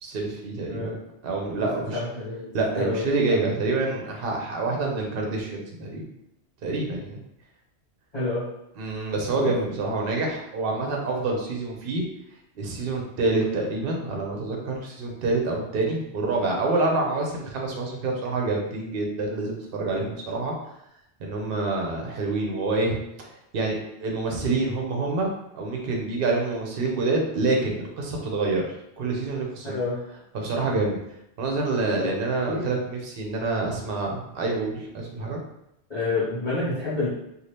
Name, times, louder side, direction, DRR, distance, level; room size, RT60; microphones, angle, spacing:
voice 1, 0.0-0.9 1.2-2.0 2.5-6.1 6.6-7.2 8.8-12.0 12.6-20.5 21.2-23.3 23.5-28.6 29.0-29.7 30.3-31.0 31.4-35.4, right 3 dB, 60° right, 0 dB, 0.8 m, -27 dB
voice 2, 0.7-1.0 1.9-2.5 2.7-3.0 3.3-3.4 8.1-8.4 9.3-9.5 29.6-30.0 32.0-32.2 32.5-32.7 35.9-37.1, left 3 dB, 35° left, -13 dB, 1.2 m, -28 dB
2.7 x 2.4 x 3.2 m, 0.82 s
omnidirectional pair, 1.2 m